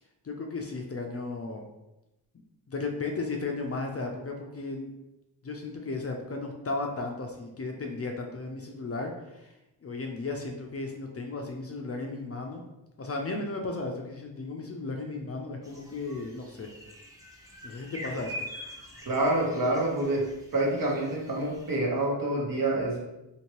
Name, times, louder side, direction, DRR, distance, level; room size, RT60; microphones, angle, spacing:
voice 1, 0.2-1.6 2.7-4.9 5.4-9.5 9.8-12.6 13.0-16.7 17.6-18.4, left 3 dB, 35° left, 2 dB, 0.5 m, -35 dB
sound 1, 15.6-21.8, equal, 10° right, 0.7 m, -44 dB
voice 2, 19.1-20.2 20.5-23.0, right 1 dB, 50° right, -3 dB, 1.1 m, -27 dB
2.8 x 2.8 x 3.0 m, 0.93 s
cardioid pair, 55°, 44 cm